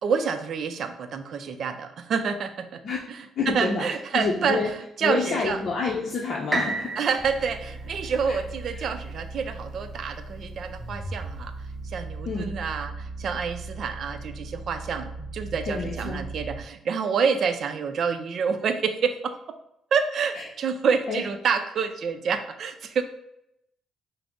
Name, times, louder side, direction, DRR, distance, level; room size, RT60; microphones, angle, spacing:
voice 1, 0.0-2.8 3.1-4.6 5.0-5.6 7.0-11.5 11.8-19.4 19.9-23.0, right 6 dB, 60° right, 9 dB, 0.4 m, -28 dB
voice 2, 3.4-3.9 4.1-4.7 5.0-7.0 8.3-8.4 12.3-12.5 15.7-16.2 20.3-20.4 21.1-21.2, left 4 dB, 55° left, -2 dB, 0.6 m, -28 dB
sound 1, 6.5-10.4 11.0-11.1, right 2 dB, 25° right, 0.7 m, -34 dB
sound 2, 7.2-16.6, right 2 dB, 5° left, 1.5 m, -38 dB
5.6 x 2.0 x 3.7 m, 0.81 s
cardioid pair, 90°, 0 cm